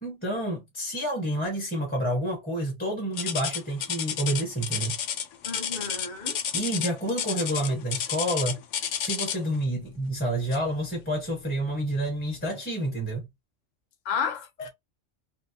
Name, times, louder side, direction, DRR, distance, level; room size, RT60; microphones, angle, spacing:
voice 1, 0.0-4.9 6.5-8.6 9.0-13.2, right 1 dB, 10° left, 0.7 m, -29 dB
sound 1, 3.2-9.6 10.5-10.8 11.3-11.4 12.1-12.2, left 8 dB, 80° left, 0.9 m, -31 dB
voice 2, 5.4-6.4 14.0-14.7, left 6 dB, 45° left, 0.7 m, -32 dB
2.8 x 2.7 x 2.7 m
omnidirectional pair, 1.3 m